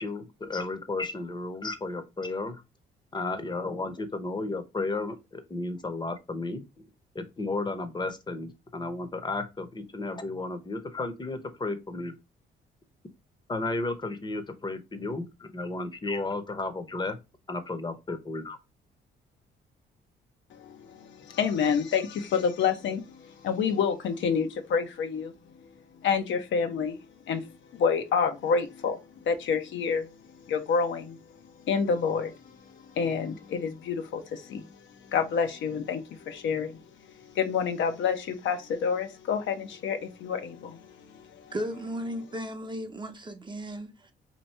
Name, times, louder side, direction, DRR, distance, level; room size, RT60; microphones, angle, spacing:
voice 1, 0.0-2.6 3.1-6.6 7.1-12.1 13.5-17.2 17.5-18.6, left 2 dB, 20° left, 0.8 m, -33 dB
voice 2, 20.5-25.3 26.0-27.0 27.3-30.1 30.5-31.2 31.6-41.5, left 6 dB, 70° left, 0.7 m, -29 dB
voice 3, 41.5-44.1, equal, 25° right, 0.7 m, -35 dB
2.9 x 2.6 x 4.3 m
cardioid pair, 90°, 20 cm